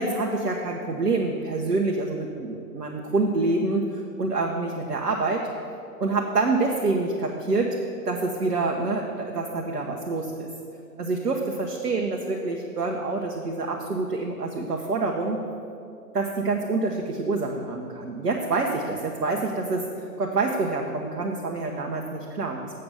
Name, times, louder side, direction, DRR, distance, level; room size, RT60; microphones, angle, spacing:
voice 1, 0.0-5.4 6.0-7.8 8.0-10.5 11.0-15.4 16.1-19.8 20.2-22.7, right 3 dB, 75° right, 1 dB, 1.0 m, -26 dB
7.7 x 6.8 x 6.9 m, 2.5 s
figure-of-eight pair, 130°, 47 cm